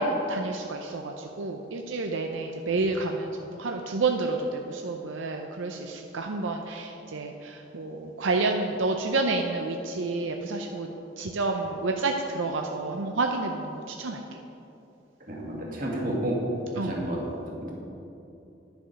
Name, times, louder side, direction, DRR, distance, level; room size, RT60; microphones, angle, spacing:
voice 1, 0.0-10.9 11.2-14.2 16.8-16.9, right 3 dB, 85° right, 3 dB, 0.6 m, -29 dB
voice 2, 15.3-16.4 16.8-17.2 17.6-17.7, right 1 dB, 45° right, -3 dB, 1.8 m, -30 dB
10.5 x 7.1 x 5.1 m, 2.9 s
head